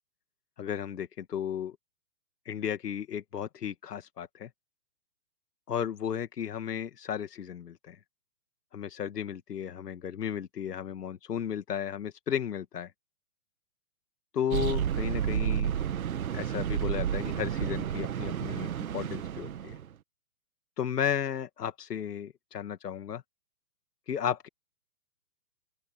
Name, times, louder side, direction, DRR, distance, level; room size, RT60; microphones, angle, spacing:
voice 1, 0.6-1.7 2.5-4.5 5.7-8.0 8.7-12.9 14.3-15.7 16.3-18.7 18.9-19.7 20.8-23.2 24.1-24.5, left 8 dB, 80° left, 2.2 m, -34 dB
sound 1, 14.5-19.9, right 9 dB, 60° right, 1.7 m, -31 dB
open air
hypercardioid pair, 175°, 47 cm